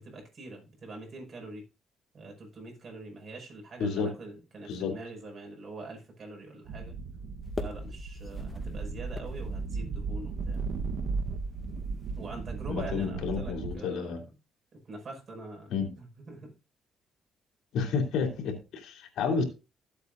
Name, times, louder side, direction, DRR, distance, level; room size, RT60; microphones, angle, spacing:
voice 1, 0.0-1.6 2.1-7.0 7.6-10.6 12.2-14.3 14.7-16.5, right 2 dB, 45° right, 1 dB, 5.7 m, -44 dB
voice 2, 3.8-4.1 4.7-4.9 12.7-14.2 15.7-15.9 17.7-19.4, left 5 dB, 85° left, 3 dB, 2.9 m, -30 dB
sound 1, 6.7-13.7, right 4 dB, 70° right, 1.1 m, -35 dB
sound 2, 7.4-13.1, left 3 dB, 30° left, 1.8 m, -45 dB
14.5 x 8.2 x 2.6 m, 0.30 s
cardioid pair, 90°, 0 cm